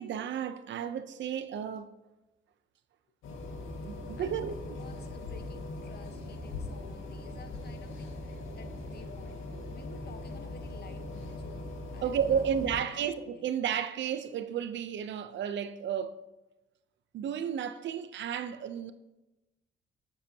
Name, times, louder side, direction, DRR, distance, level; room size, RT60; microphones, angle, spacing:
voice 1, 0.0-1.9 3.8-4.5 12.0-16.2 17.1-18.9, right 8 dB, 65° right, 0.8 m, -32 dB
sound 1, 3.2-12.8, left 2 dB, 90° left, 2.0 m, -41 dB
voice 2, 4.2-11.6 11.9-13.5, left 5 dB, 55° left, 1.2 m, -53 dB
19.5 x 7.3 x 2.9 m
cardioid pair, 90°, 20 cm